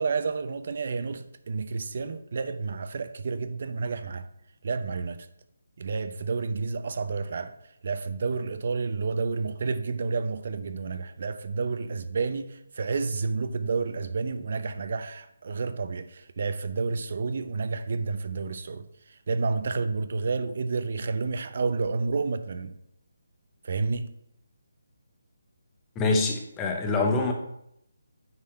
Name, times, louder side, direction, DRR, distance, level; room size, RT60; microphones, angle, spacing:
voice 1, 0.0-4.3 4.6-5.3 5.8-7.5 7.8-22.8 23.6-24.1, right 4 dB, 45° right, 0.6 m, -30 dB
voice 2, 25.9-27.3, left 3 dB, 10° left, 0.8 m, -25 dB
9.6 x 4.2 x 4.4 m
hypercardioid pair, 170°, 0 cm